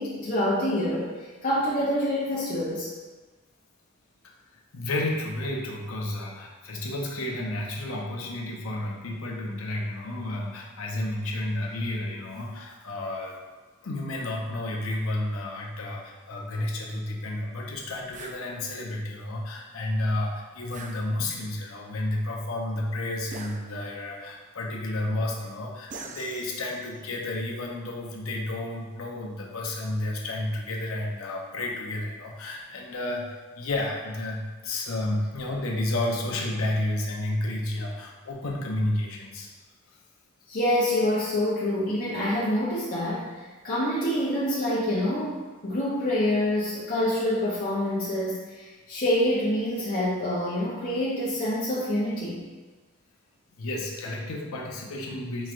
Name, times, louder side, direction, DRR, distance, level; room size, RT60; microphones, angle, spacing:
voice 1, 0.0-2.9 40.5-52.4, left 1 dB, 45° left, -7 dB, 0.6 m, -26 dB
voice 2, 4.7-13.4 13.8-39.5 53.5-55.5, left 1 dB, 80° left, -1 dB, 0.7 m, -31 dB
sound 1, 18.1-18.4 20.7-21.5 23.3-24.1 25.9-27.0, right 3 dB, 35° right, 0.3 m, -43 dB
4.7 x 3.1 x 2.5 m, 1.3 s
head